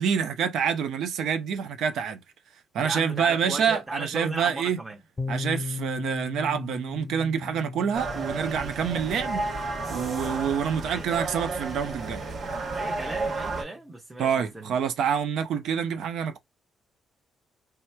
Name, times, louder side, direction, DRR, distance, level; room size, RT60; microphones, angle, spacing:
voice 1, 0.0-2.2 2.7-4.8 5.3-9.4 9.9-12.2 14.2-16.4, right 7 dB, 75° right, 0.6 m, -27 dB
voice 2, 2.8-5.0 10.9-11.1 12.7-14.3 14.5-14.7, right 2 dB, 15° right, 0.7 m, -36 dB
sound 1, 5.2-12.9, left 3 dB, 25° left, 0.6 m, -38 dB
sound 2, 7.9-13.6, right 3 dB, 50° right, 1.1 m, -32 dB
3.3 x 2.9 x 2.2 m
cardioid pair, 90°, 0 cm